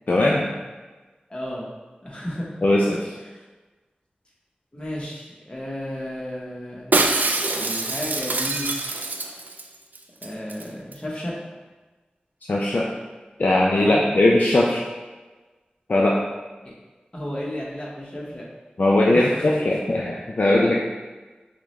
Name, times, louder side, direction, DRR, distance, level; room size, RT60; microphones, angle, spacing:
voice 1, 0.1-0.5 2.6-3.1 12.5-12.9 13.4-14.8 15.9-16.2 18.8-20.7, left 1 dB, 55° left, -3 dB, 0.4 m, -19 dB
voice 2, 1.3-1.7 2.0-2.6 3.2-3.4 4.7-7.0 7.5-8.7 10.2-11.4 13.8-14.0 16.6-16.7 17.1-18.4 19.1-19.6, left 1 dB, 30° left, -4 dB, 1.1 m, -33 dB
Shatter, 6.9-9.7 9.9-10.0 10.2-10.6 10.9-11.0, right 2 dB, 65° right, 0.3 m, -24 dB
5.8 x 2.1 x 3.0 m, 1.2 s
wide cardioid pair, 60°, 3 cm